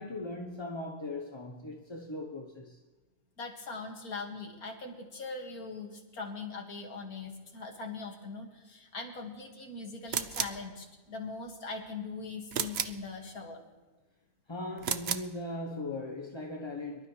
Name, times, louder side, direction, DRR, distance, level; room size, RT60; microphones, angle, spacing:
voice 1, 0.0-2.8 14.5-17.1, left 2 dB, 20° left, 0.8 m, -39 dB
voice 2, 3.4-13.6, left 4 dB, 60° left, 2.5 m, -41 dB
sound 1, 10.1-10.6 12.5-13.0 14.8-15.3, right 8 dB, 60° right, 0.7 m, -33 dB
24.0 x 12.5 x 3.3 m
omnidirectional pair, 1.8 m